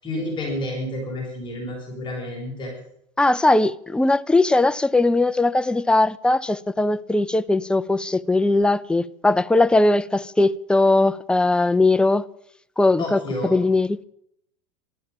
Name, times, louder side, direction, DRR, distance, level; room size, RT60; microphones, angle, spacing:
voice 1, 0.0-2.7 13.0-13.6, left 1 dB, 30° left, 7.1 m, -30 dB
voice 2, 3.2-12.2 12.8-14.0, left 2 dB, 5° left, 0.5 m, -19 dB
14.0 x 13.0 x 7.1 m
hypercardioid pair, 105°, 17 cm